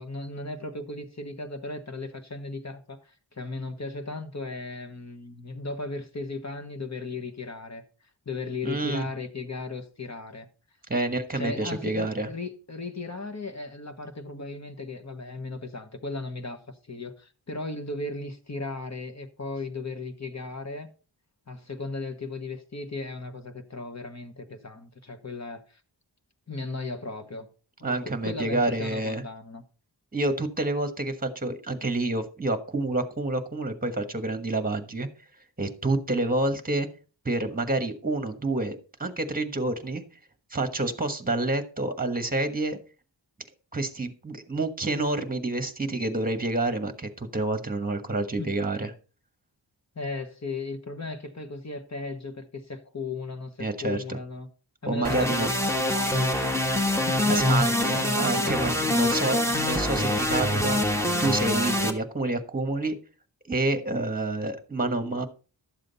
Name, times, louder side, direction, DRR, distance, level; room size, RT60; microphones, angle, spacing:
voice 1, 0.0-7.8 8.2-10.5 11.3-20.9 21.5-25.8 26.5-27.5 27.8-29.6 48.4-48.5 49.9-54.5 54.8-56.5 57.0-59.4, left 3 dB, 35° left, 1.4 m, -36 dB
voice 2, 8.6-9.1 10.9-12.3 27.8-29.2 30.1-35.1 35.6-36.9 37.2-40.0 40.5-42.8 43.7-48.9 53.6-54.2 54.9-55.5 57.3-63.0 63.5-65.3, right 2 dB, 20° right, 1.3 m, -28 dB
sound 1, 55.0-61.9, left 1 dB, 5° left, 1.3 m, -25 dB
12.0 x 7.5 x 4.1 m
wide cardioid pair, 90°, 45 cm